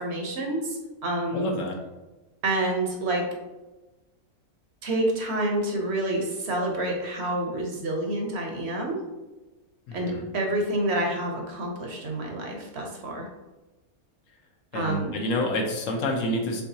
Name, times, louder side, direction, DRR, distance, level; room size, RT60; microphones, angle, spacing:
voice 1, 0.0-1.5 2.4-3.2 4.8-9.0 9.9-13.3 14.7-15.1, right 1 dB, 55° right, 1 dB, 0.9 m, -28 dB
voice 2, 1.3-1.7 9.9-10.2 14.7-16.6, left 1 dB, 65° left, 1 dB, 1.0 m, -28 dB
4.7 x 3.5 x 2.7 m, 1.1 s
omnidirectional pair, 1.5 m